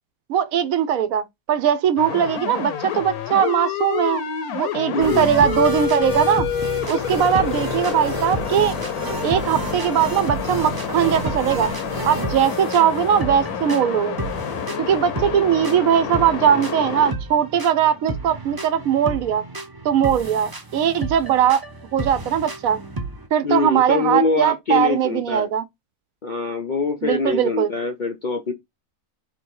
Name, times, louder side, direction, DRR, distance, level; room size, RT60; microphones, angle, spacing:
voice 1, 0.3-4.2 4.5-6.5 6.9-8.7 9.2-11.7 12.0-14.2 14.8-19.4 19.8-21.6 21.9-22.8 23.3-25.6 27.0-27.7, right 9 dB, 70° right, 1.0 m, -20 dB
sound 1, 2.0-17.1, left 9 dB, 85° left, 1.3 m, -28 dB
voice 2, 4.9-5.3 23.4-25.5 26.2-28.5, left 3 dB, 55° left, 0.5 m, -24 dB
sound 2, 5.0-23.3, right 2 dB, 25° right, 0.4 m, -31 dB
4.1 x 2.7 x 4.5 m
omnidirectional pair, 1.5 m